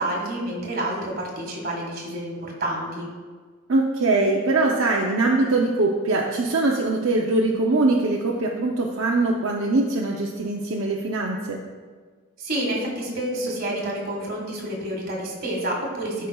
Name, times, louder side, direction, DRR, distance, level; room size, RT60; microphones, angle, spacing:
voice 1, 0.0-3.1 12.4-16.3, right 1 dB, 45° right, -1 dB, 1.7 m, -29 dB
voice 2, 3.7-11.6, right 2 dB, 70° right, -1 dB, 0.6 m, -22 dB
12.5 x 5.1 x 2.3 m, 1.5 s
head